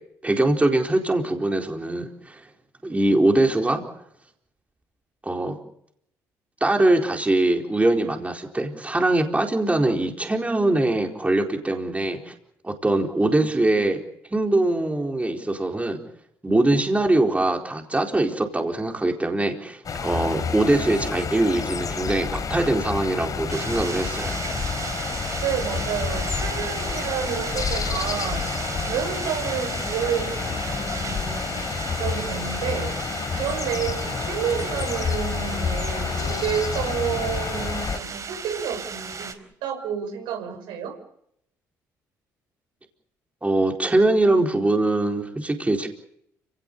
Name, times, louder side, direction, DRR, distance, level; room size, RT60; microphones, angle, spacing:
voice 1, 0.2-2.4 2.8-3.8 5.2-5.6 6.6-12.3 12.6-14.0 14.3-16.0 16.4-24.4 43.4-45.9, right 2 dB, 15° right, 2 dB, 4.4 m, -22 dB
sound 1, 19.9-38.0, left 5 dB, 45° left, 3.5 m, -29 dB
sound 2, 23.5-39.3, right 5 dB, 40° right, 4.5 m, -35 dB
voice 2, 25.4-31.6 32.0-32.9 33.3-39.4 39.6-41.0, right 8 dB, 75° right, 5 dB, 6.0 m, -30 dB
30.0 x 18.0 x 6.9 m, 0.73 s
hypercardioid pair, 55°, 8 cm